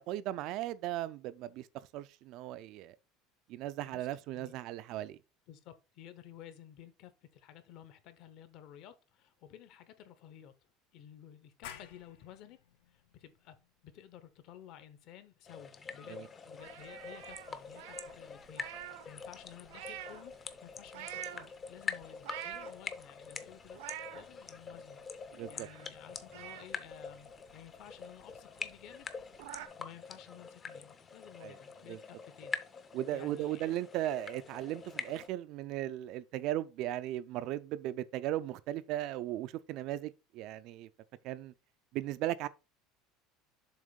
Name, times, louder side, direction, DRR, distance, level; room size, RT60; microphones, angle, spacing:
voice 1, 0.0-1.7 1.9-3.0 3.5-5.2 16.1-16.3 25.3-25.7 31.4-31.6 31.9-32.0 32.9-40.9 41.2-41.5 41.9-42.5, right 13 dB, 45° right, 0.4 m, -37 dB
voice 2, 3.8-4.5 5.5-10.5 10.9-12.6 12.9-13.6 13.8-20.3 20.6-25.0 25.5-29.1 29.8-32.6 33.1-33.7, left 10 dB, 45° left, 0.8 m, -54 dB
sound 1, 11.6-17.0, left 10 dB, 80° left, 1.0 m, -55 dB
sound 2, 15.5-35.3, left 5 dB, 20° left, 0.6 m, -45 dB
sound 3, 16.6-19.1 19.4-20.3 20.9-21.4 22.0-23.0 23.5-24.2 24.7-24.8 25.1-26.0 26.3-27.8 28.2-28.3 28.6-28.7 29.0-29.7, right 12 dB, 80° right, 0.8 m, -46 dB
7.3 x 3.1 x 5.2 m
cardioid pair, 170°, 0 cm